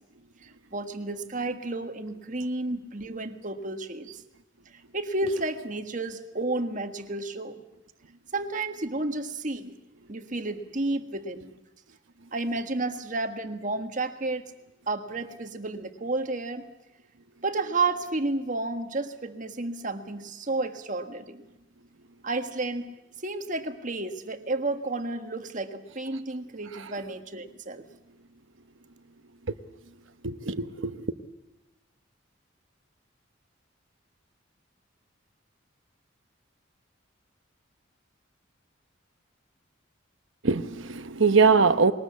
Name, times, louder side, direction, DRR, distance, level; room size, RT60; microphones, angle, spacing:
voice 1, 0.7-4.2 4.9-7.6 8.3-9.7 10.1-11.5 12.3-14.5 14.9-16.6 17.4-21.4 22.2-22.9 23.2-27.8, right 2 dB, 40° right, 7 dB, 1.5 m, -31 dB
voice 2, 30.2-31.0 40.4-41.9, right 4 dB, 75° right, 11 dB, 0.9 m, -22 dB
21.0 x 19.5 x 8.4 m, 0.98 s
head